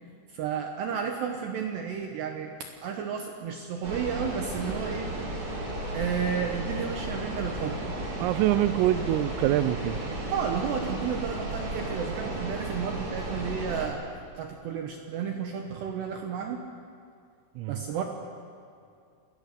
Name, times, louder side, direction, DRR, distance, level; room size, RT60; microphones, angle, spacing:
voice 1, 0.3-2.5 2.8-5.1 5.9-7.8 10.3-14.0 14.4-16.6 17.7-18.0, right 7 dB, 70° right, 3 dB, 2.9 m, -32 dB
sound 1, 3.8-13.9, right 1 dB, 30° right, 3.3 m, -34 dB
voice 2, 8.2-10.0 17.6-17.8, right 14 dB, 85° right, 15 dB, 3.4 m, -25 dB
28.0 x 21.5 x 6.7 m, 2.3 s
omnidirectional pair, 5.9 m